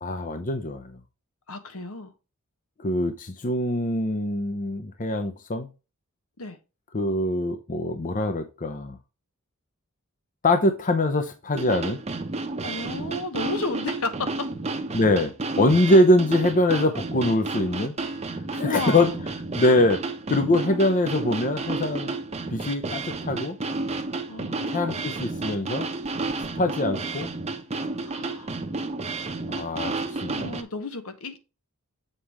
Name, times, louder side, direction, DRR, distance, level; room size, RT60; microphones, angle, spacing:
voice 1, 0.0-1.0 2.8-5.7 6.9-9.0 10.4-12.0 14.9-17.9 18.5-19.1 19.5-20.0 20.3-22.1 22.5-23.6 24.7-25.9 26.5-27.3 29.5-30.5, left 1 dB, 40° left, 0.7 m, -23 dB
voice 2, 1.5-2.1 6.4-6.6 12.6-14.5 18.6-19.2 24.3-25.0 28.0-28.5 30.3-31.4, left 3 dB, 70° left, 1.1 m, -33 dB
sound 1, 11.5-30.6, right 3 dB, 30° right, 0.8 m, -31 dB
7.7 x 5.0 x 3.0 m
head